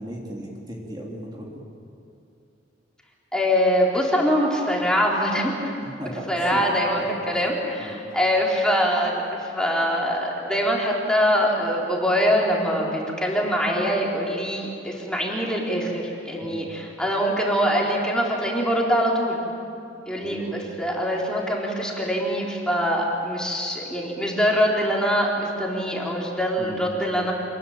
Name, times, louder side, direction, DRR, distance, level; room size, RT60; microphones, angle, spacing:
voice 1, 0.0-1.5 6.0-6.3 6.5-6.6 7.8-8.0 16.4-16.7 20.2-20.5 26.6-27.0, right 1 dB, 25° right, -3 dB, 3.3 m, -36 dB
voice 2, 3.3-5.7 6.1-19.4 20.1-27.3, equal, 5° left, -3 dB, 3.9 m, -23 dB
27.0 x 22.0 x 8.9 m, 2.7 s
head